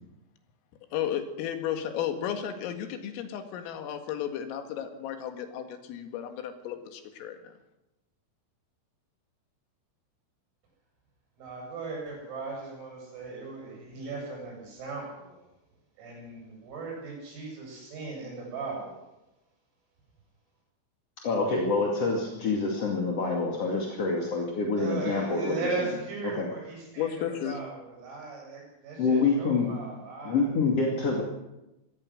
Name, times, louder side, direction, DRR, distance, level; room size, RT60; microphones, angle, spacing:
voice 1, 0.9-7.5 27.0-27.6, left 9 dB, 80° left, 6 dB, 4.5 m, -33 dB
voice 2, 11.4-15.4 16.0-19.0 24.8-30.7, right 4 dB, 85° right, -1 dB, 11.0 m, -38 dB
voice 3, 21.2-25.9 26.3-26.5 29.0-29.7 30.2-31.2, left 4 dB, 40° left, -1 dB, 2.4 m, -26 dB
22.5 x 18.0 x 6.5 m, 0.98 s
omnidirectional pair, 5.9 m